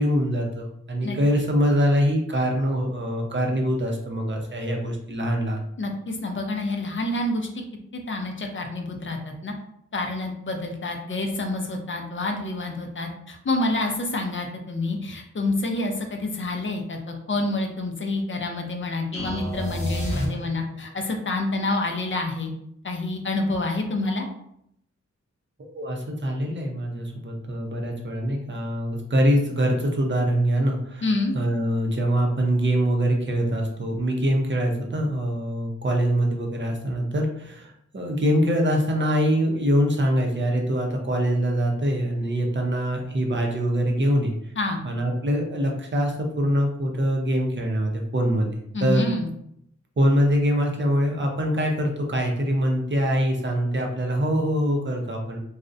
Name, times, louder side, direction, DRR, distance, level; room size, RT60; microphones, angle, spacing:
voice 1, 0.0-5.7 25.6-31.0 31.3-44.5 44.8-49.1 50.0-55.4, equal, 40° right, 1 dB, 0.5 m, -24 dB
voice 2, 5.8-7.5 8.1-9.5 9.9-22.5 22.8-24.3 31.0-31.3 44.6-44.8 48.7-49.3, left 2 dB, 45° left, 3 dB, 0.5 m, -28 dB
sound 1, 19.1-20.9, equal, 25° left, 0.9 m, -29 dB
2.4 x 2.0 x 2.5 m, 0.74 s
wide cardioid pair, 75°, 29 cm